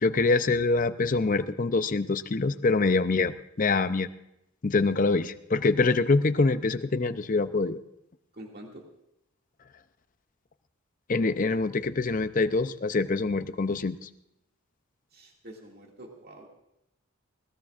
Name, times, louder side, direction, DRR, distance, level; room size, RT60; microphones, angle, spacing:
voice 1, 0.0-4.1 4.6-7.8 11.1-14.1, left 3 dB, 35° left, 11 dB, 0.5 m, -25 dB
voice 2, 8.3-8.8 15.1-16.5, right 1 dB, 45° right, 0 dB, 2.2 m, -46 dB
20.5 x 18.0 x 2.5 m, 0.84 s
head